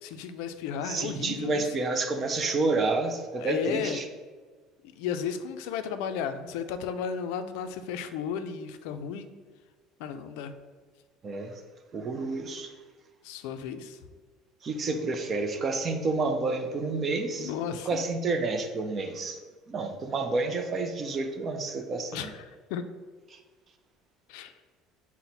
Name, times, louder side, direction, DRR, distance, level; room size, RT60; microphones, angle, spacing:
voice 1, 0.0-1.7 3.4-4.0 4.8-9.3 10.0-10.5 13.2-14.0 17.4-17.9 22.1-22.8 24.3-24.5, left 7 dB, 80° left, 9 dB, 0.3 m, -34 dB
voice 2, 0.8-4.1 11.2-11.6 11.9-12.7 14.6-17.5 17.9-19.4 19.7-22.3 23.3-23.4, right 3 dB, 25° right, 6 dB, 0.4 m, -29 dB
5.8 x 2.1 x 4.0 m, 1.4 s
cardioid pair, 160°, 0 cm